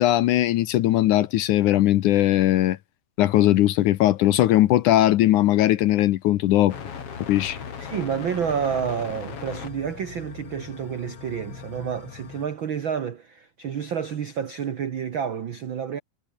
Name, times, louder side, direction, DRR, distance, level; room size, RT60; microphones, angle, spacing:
voice 1, 0.0-2.8 3.2-6.7 7.3-7.6, left 14 dB, 75° left, 2.1 m, -19 dB
sound 1, 6.7-12.5, left 7 dB, 45° left, 3.1 m, -38 dB
voice 2, 7.4-16.0, right 7 dB, 80° right, 1.1 m, -29 dB
omnidirectional pair, 4.2 m